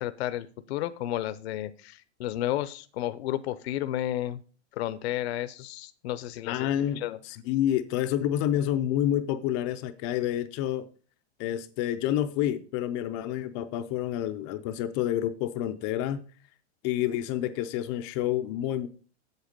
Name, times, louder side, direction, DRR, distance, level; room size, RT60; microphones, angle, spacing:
voice 1, 0.0-4.4 4.8-6.7 7.0-7.2, left 13 dB, 60° left, 0.7 m, -32 dB
voice 2, 6.5-10.8 11.4-16.2 16.8-18.9, left 11 dB, 25° left, 0.4 m, -28 dB
8.1 x 7.9 x 5.1 m
supercardioid pair, 160°, 35 cm